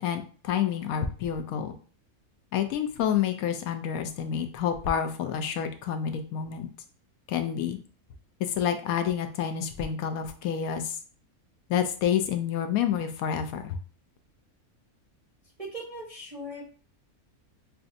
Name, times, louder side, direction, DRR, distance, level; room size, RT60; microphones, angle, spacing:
voice 1, 0.0-1.7 2.5-6.7 7.3-7.8 8.4-11.0 11.7-13.8, left 8 dB, 75° left, 7 dB, 1.0 m, -28 dB
voice 2, 15.6-16.7, right 1 dB, 35° right, -2 dB, 0.6 m, -39 dB
5.8 x 2.5 x 2.5 m, 0.40 s
omnidirectional pair, 1.5 m